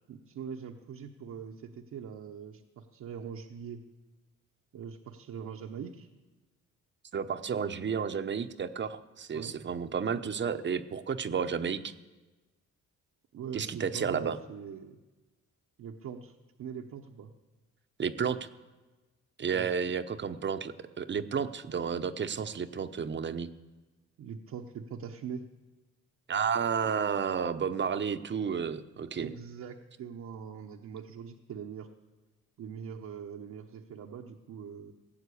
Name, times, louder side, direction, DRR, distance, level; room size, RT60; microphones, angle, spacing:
voice 1, 0.1-3.8 4.7-6.1 9.3-9.5 13.3-15.0 15.8-17.3 19.5-19.7 24.2-25.5 29.0-31.9 32.6-34.9, right 7 dB, 65° right, 1 dB, 1.0 m, -42 dB
voice 2, 7.1-11.9 13.5-14.4 18.0-18.4 19.4-23.5 26.3-29.3, right 6 dB, 40° right, 11 dB, 0.8 m, -31 dB
17.5 x 7.5 x 8.4 m, 1.2 s
cardioid pair, 90°, 29 cm